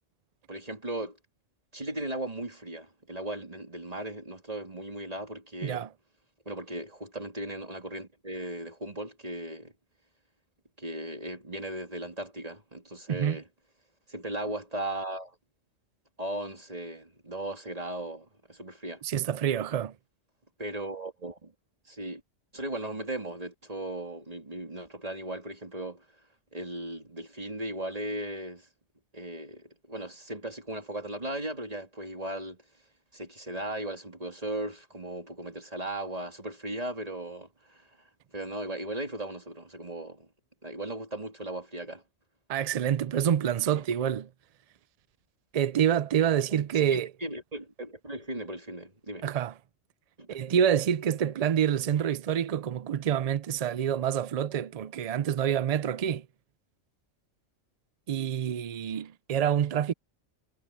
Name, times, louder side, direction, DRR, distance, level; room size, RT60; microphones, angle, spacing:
voice 1, 0.5-1.2 1.7-5.9 6.4-9.7 10.8-13.5 14.1-15.3 16.2-19.0 20.6-21.5 21.9-22.2 22.5-26.0 26.5-28.7 29.1-32.6 33.1-37.9 38.3-40.3 40.6-42.0 46.7-49.3 50.2-50.3, right 1 dB, 30° right, 3.3 m, -37 dB
voice 2, 19.0-19.9 42.5-44.3 45.5-47.1 49.2-49.5 50.3-56.3 58.1-59.9, right 9 dB, 75° right, 0.3 m, -27 dB
omnidirectional pair, 1.3 m